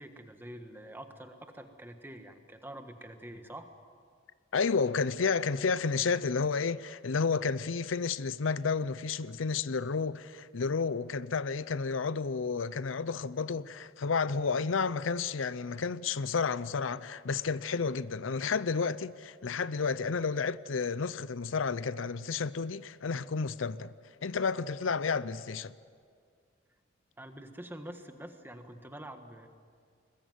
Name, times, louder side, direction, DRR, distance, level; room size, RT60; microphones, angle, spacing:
voice 1, 0.0-3.7 27.2-29.5, right 1 dB, 10° right, 1.5 m, -46 dB
voice 2, 4.5-23.9 24.2-25.7, left 5 dB, 85° left, 0.6 m, -31 dB
22.5 x 20.0 x 9.4 m
head